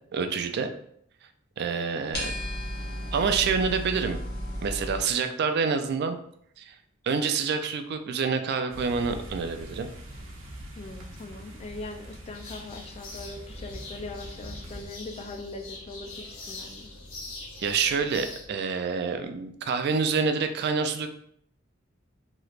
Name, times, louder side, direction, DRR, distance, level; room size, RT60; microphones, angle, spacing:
voice 1, 0.1-0.7 1.6-2.3 3.1-4.2 4.6-6.2 6.6-6.7 7.0-9.9 17.6-21.1, right 5 dB, 55° right, 7 dB, 0.3 m, -27 dB
sound 1, 2.1-5.0, equal, 55° left, 1.0 m, -34 dB
sound 2, 8.7-14.9, equal, 75° right, 0.7 m, -43 dB
voice 2, 10.8-16.9, left 2 dB, 30° left, 5 dB, 0.3 m, -41 dB
sound 3, 12.3-18.4, left 2 dB, 85° left, 0.9 m, -43 dB
3.2 x 3.0 x 2.4 m, 0.68 s
head